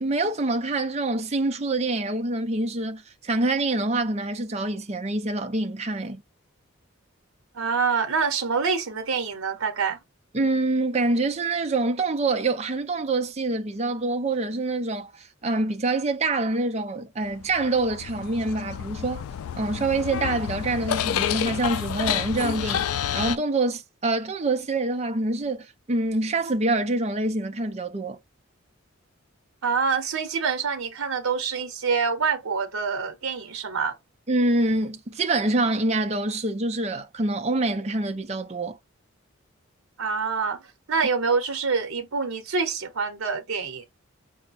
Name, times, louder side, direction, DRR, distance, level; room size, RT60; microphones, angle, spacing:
voice 1, 0.0-6.2 10.3-19.2 19.5-28.2 34.3-38.8, right 2 dB, 30° right, 0.6 m, -26 dB
voice 2, 7.5-10.0 29.6-34.0 40.0-40.6 40.9-43.8, right 5 dB, 85° right, 0.8 m, -26 dB
sound 1, 17.3-23.4, left 10 dB, 85° left, 0.3 m, -29 dB
5.2 x 2.1 x 4.0 m
head